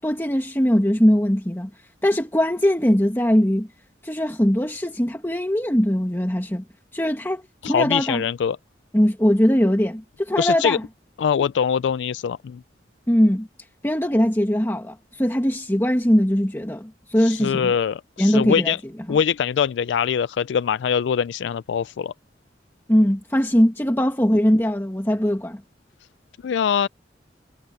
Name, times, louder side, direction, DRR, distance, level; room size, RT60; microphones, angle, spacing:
voice 1, 0.0-1.7 2.0-3.7 4.0-6.6 6.9-8.3 8.9-10.8 13.1-13.5 13.8-17.7 18.2-18.7 19.1-19.2 22.9-25.6, equal, 15° left, 1.8 m, -20 dB
voice 2, 7.6-8.6 10.4-10.8 11.2-12.6 17.2-18.8 19.1-22.1 26.4-26.9, left 7 dB, 85° left, 0.3 m, -23 dB
head